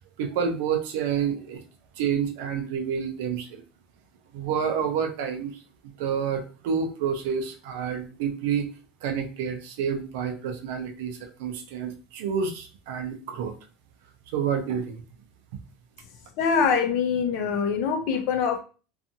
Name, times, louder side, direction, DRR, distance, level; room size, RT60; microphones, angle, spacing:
voice 1, 0.2-1.6 2.0-3.6 4.3-5.5 6.0-8.7 9.0-13.5 14.3-15.0, right 7 dB, 70° right, 5 dB, 0.5 m, -29 dB
voice 2, 16.4-18.6, left 6 dB, 50° left, 5 dB, 0.6 m, -24 dB
2.6 x 2.4 x 2.7 m, 0.35 s
supercardioid pair, 170°, 0 cm